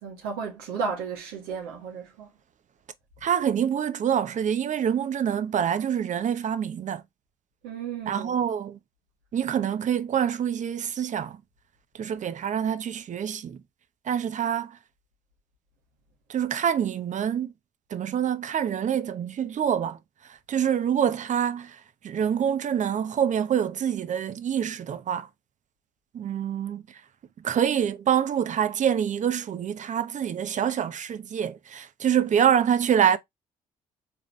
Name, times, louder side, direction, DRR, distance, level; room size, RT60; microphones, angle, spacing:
voice 1, 0.0-2.3 7.6-8.4, right 5 dB, 90° right, 2.2 m, -34 dB
voice 2, 3.2-7.0 8.1-8.8 9.3-11.4 11.9-13.6 14.1-14.8 16.3-17.5 17.9-20.0 20.3-25.3 26.1-26.8 27.4-33.2, right 9 dB, 55° right, 0.8 m, -26 dB
4.6 x 3.6 x 3.0 m
supercardioid pair, 70°, 15 cm